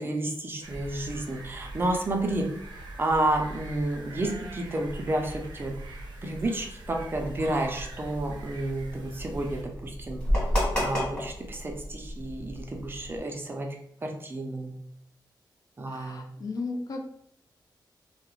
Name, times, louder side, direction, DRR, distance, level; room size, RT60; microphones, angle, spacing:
voice 1, 0.0-2.5 3.0-5.7 6.2-10.2 10.8-13.7 14.0-14.7 15.8-16.2, right 1 dB, 30° right, 2 dB, 0.4 m, -30 dB
sound 1, 0.6-9.6, right 1 dB, 75° right, 0.5 m, -42 dB
sound 2, 7.1-13.2, equal, 15° left, 1.4 m, -32 dB
voice 2, 15.9-17.1, left 3 dB, 50° left, 3 dB, 0.4 m, -35 dB
2.3 x 2.1 x 3.0 m, 0.70 s
wide cardioid pair, 125°, 8 cm